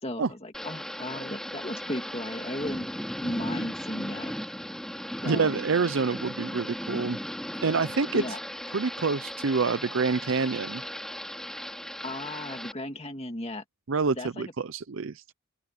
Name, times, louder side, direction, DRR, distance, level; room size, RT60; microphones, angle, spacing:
voice 1, 0.0-2.9 3.2-4.3 5.2-5.5 8.1-8.4 12.0-13.6 14.2-14.4, left 1 dB, 30° left, 2.1 m, -35 dB
Thunder / Rain, 0.5-12.7, equal, ahead, 2.3 m, -36 dB
voice 2, 5.3-7.2 7.6-8.4 8.7-10.8 13.9-15.2, right 4 dB, 70° right, 0.6 m, -27 dB
open air
head